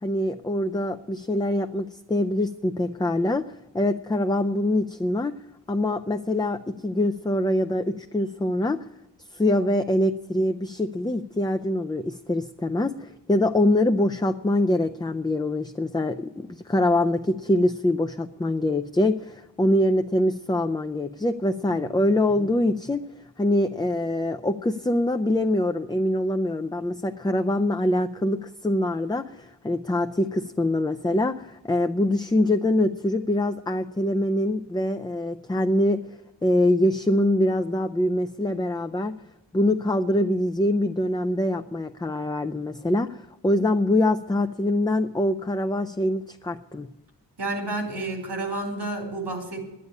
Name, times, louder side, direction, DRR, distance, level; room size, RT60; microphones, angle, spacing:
voice 1, 0.0-5.4 5.7-8.8 9.3-23.0 23.4-36.0 36.4-39.1 39.5-46.9, left 1 dB, 10° left, 6 dB, 0.4 m, -24 dB
voice 2, 47.4-49.7, right 2 dB, 75° right, 3 dB, 3.5 m, -30 dB
11.0 x 9.8 x 9.5 m, 0.96 s
wide cardioid pair, 95°, 42 cm